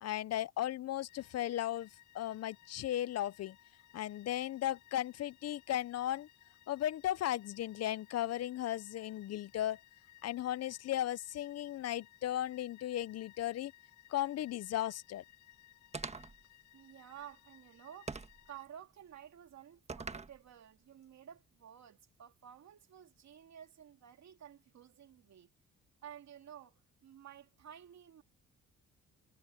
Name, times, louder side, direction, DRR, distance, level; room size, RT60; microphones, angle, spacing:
voice 1, 0.0-1.9 2.1-3.6 3.9-6.3 6.7-9.8 10.2-13.7 14.1-15.2, left 12 dB, 55° left, 0.5 m, -36 dB
sound 1, 1.1-18.7, left 14 dB, 80° left, 6.1 m, -62 dB
sound 2, 15.9-16.4 18.1-18.5 19.9-20.4, right 4 dB, 20° right, 1.4 m, -42 dB
voice 2, 16.7-18.2 18.5-25.5 26.0-28.2, right 9 dB, 65° right, 2.7 m, -53 dB
cardioid pair, 90°, 30 cm